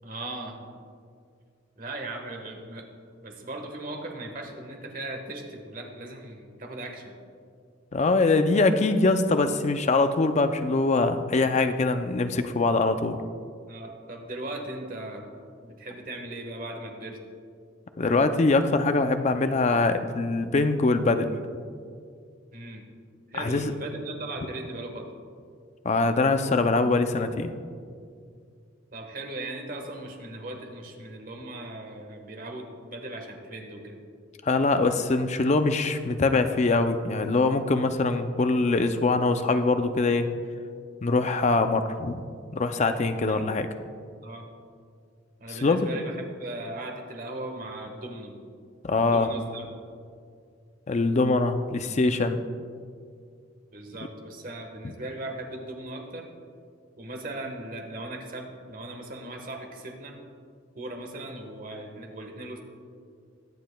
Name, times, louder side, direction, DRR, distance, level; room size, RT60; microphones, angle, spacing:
voice 1, 0.0-0.7 1.8-2.9 3.2-7.2 13.7-15.3 15.6-17.2 22.5-22.8 23.3-25.1 28.9-34.0 43.3-43.4 44.2-44.5 45.4-48.3 48.9-49.7 53.7-56.3 57.0-60.2 60.7-62.6, right 2 dB, 45° right, 3 dB, 1.3 m, -38 dB
voice 2, 7.9-13.2 18.0-21.3 23.4-23.7 25.8-27.5 34.4-40.3 41.0-42.2 42.5-43.7 45.5-45.9 48.8-49.3 50.9-52.4, left 3 dB, 35° left, 8 dB, 0.4 m, -23 dB
22.0 x 7.4 x 2.3 m, 2.2 s
head